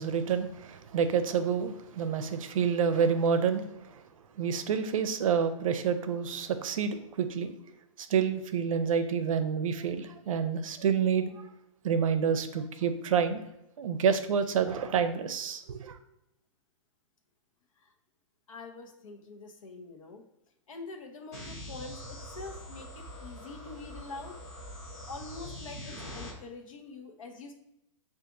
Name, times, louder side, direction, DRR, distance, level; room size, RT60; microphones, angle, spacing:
voice 1, 0.0-4.0 4.4-7.5 8.0-11.5 11.8-13.4 13.8-16.0, right 7 dB, 90° right, 0.5 m, -28 dB
voice 2, 18.5-20.2 20.7-24.3 25.1-27.5, left 3 dB, 80° left, 0.8 m, -45 dB
sound 1, 21.3-26.3, left 1 dB, 20° left, 0.8 m, -43 dB
5.8 x 2.5 x 2.5 m
hypercardioid pair, 160°, 17 cm